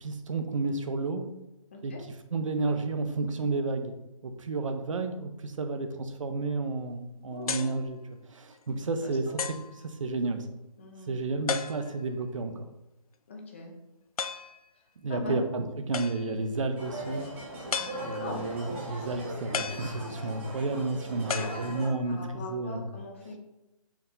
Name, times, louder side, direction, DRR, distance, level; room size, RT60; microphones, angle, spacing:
voice 1, 0.0-1.3 1.8-1.9 2.3-3.9 4.2-8.0 8.3-9.2 9.8-10.5 11.1-12.7 15.0-17.3 18.0-22.9, right 3 dB, 65° right, 7 dB, 0.7 m, -31 dB
voice 2, 1.7-2.0 7.3-7.7 9.0-9.4 10.8-11.2 13.3-13.7 15.1-15.5 18.2-18.5 21.3-21.6 22.1-23.4, left 2 dB, 20° left, 1 dB, 0.5 m, -40 dB
sound 1, 7.5-7.8 8.5-8.6 9.4-9.7 11.5-12.1 14.2-14.6 15.9-16.4 17.7-18.4 19.5-20.4 21.3-22.1, left 6 dB, 90° left, 0.4 m, -35 dB
sound 2, 16.8-21.9, right 1 dB, 20° right, 0.8 m, -39 dB
4.5 x 2.8 x 3.8 m, 0.93 s
hypercardioid pair, 165°, 18 cm